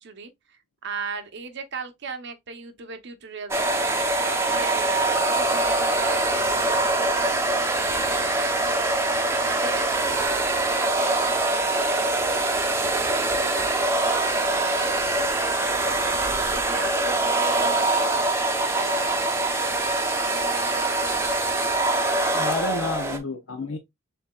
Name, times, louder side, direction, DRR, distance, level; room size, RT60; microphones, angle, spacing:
voice 1, 0.0-9.0 9.4-15.0 15.4-19.8 20.3-21.2, right 5 dB, 60° right, 0.8 m, -38 dB
sound 1, 3.5-23.2, right 2 dB, 15° right, 0.7 m, -23 dB
voice 2, 22.3-23.8, left 3 dB, 90° left, 0.7 m, -30 dB
6.8 x 2.7 x 2.3 m
head